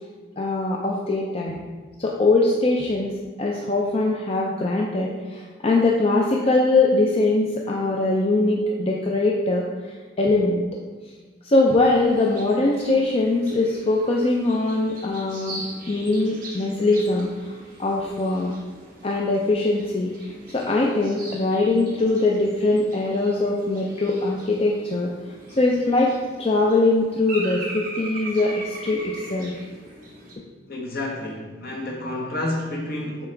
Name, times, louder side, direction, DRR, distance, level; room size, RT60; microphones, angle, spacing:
voice 1, 0.4-1.6 2.0-3.1 3.4-9.7 10.2-10.6 11.4-15.6 15.9-18.5 19.0-20.1 20.5-25.1 25.6-29.5, left 2 dB, 30° left, -1 dB, 0.5 m, -22 dB
sound 1, 11.6-30.3, right 1 dB, 50° right, 1.4 m, -41 dB
voice 2, 30.7-33.3, left 1 dB, 55° left, 0 dB, 1.1 m, -29 dB
7.0 x 4.7 x 3.4 m, 1.4 s
head